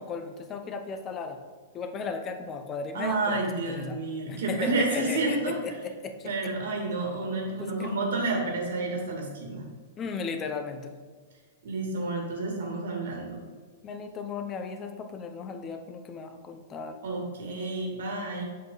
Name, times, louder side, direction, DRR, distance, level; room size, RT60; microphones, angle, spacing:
voice 1, 0.0-1.4 1.7-3.4 3.7-4.0 4.3-6.3 7.6-7.9 10.0-10.9 13.8-17.0, left 4 dB, 25° left, 7 dB, 0.7 m, -35 dB
voice 2, 2.9-5.8 6.2-9.6 11.6-13.4 17.0-18.4, right 2 dB, 85° right, 1 dB, 2.4 m, -30 dB
7.6 x 7.3 x 4.0 m, 1.5 s
hypercardioid pair, 150°, 0 cm